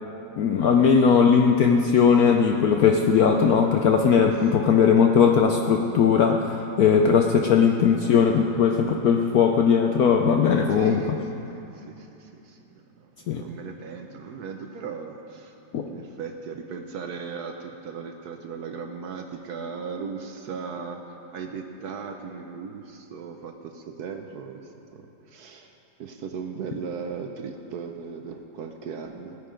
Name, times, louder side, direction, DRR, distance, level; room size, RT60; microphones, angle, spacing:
voice 1, 0.4-11.2 13.3-13.4 15.7-15.8, left 6 dB, 70° left, 3 dB, 0.9 m, -19 dB
voice 2, 10.7-11.1 11.4-15.5 15.8-29.4, right 5 dB, 65° right, 5 dB, 1.0 m, -37 dB
17.0 x 9.4 x 5.1 m, 2.9 s
omnidirectional pair, 2.1 m